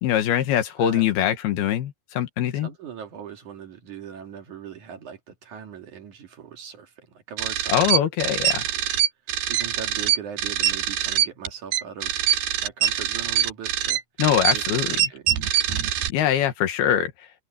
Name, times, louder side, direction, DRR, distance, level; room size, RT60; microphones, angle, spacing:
voice 1, 0.0-2.7 7.7-8.6 14.2-15.0 16.1-17.1, left 10 dB, 80° left, 3.5 m, -23 dB
voice 2, 2.5-8.9 9.2-12.2 12.6-14.0 14.5-15.3, right 8 dB, 55° right, 3.3 m, -40 dB
sound 1, 7.4-16.1, right 11 dB, 80° right, 3.4 m, -24 dB
omnidirectional pair, 4.4 m